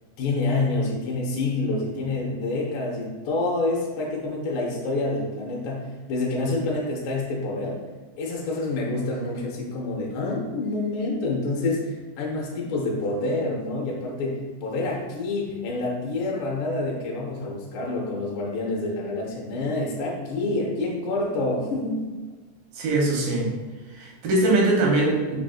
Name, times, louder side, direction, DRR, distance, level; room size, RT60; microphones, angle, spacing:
voice 1, 0.2-7.8 8.2-22.0, left 2 dB, 75° left, -2 dB, 1.8 m, -27 dB
voice 2, 22.8-23.5 24.0-25.4, right 2 dB, 85° right, -3 dB, 2.5 m, -22 dB
5.9 x 2.5 x 2.4 m, 1.3 s
omnidirectional pair, 4.0 m